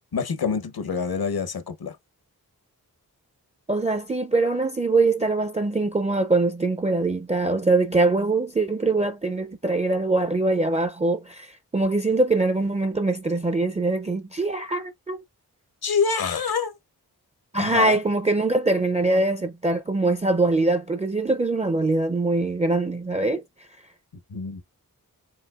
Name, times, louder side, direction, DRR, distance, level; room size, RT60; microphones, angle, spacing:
voice 1, 0.1-2.0 15.8-16.7 17.6-18.0 24.3-24.6, left 5 dB, 75° left, 0.9 m, -26 dB
voice 2, 3.7-15.2 17.5-23.4, right 2 dB, 20° right, 0.4 m, -23 dB
4.6 x 3.6 x 2.3 m
wide cardioid pair, 90°, 37 cm